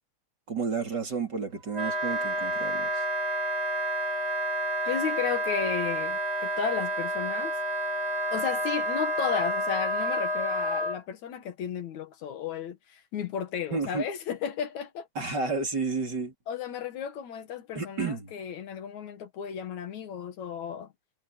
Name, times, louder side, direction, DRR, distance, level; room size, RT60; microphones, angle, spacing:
voice 1, 0.5-3.0 13.7-14.0 15.2-16.3 17.7-18.3, right 4 dB, 35° right, 4.3 m, -31 dB
Wind instrument woodwind instrument, 1.7-11.0, right 1 dB, 10° right, 4.1 m, -29 dB
voice 2, 4.8-7.5 8.3-15.1 16.5-20.9, left 8 dB, 75° left, 2.9 m, -33 dB
omnidirectional pair, 3.3 m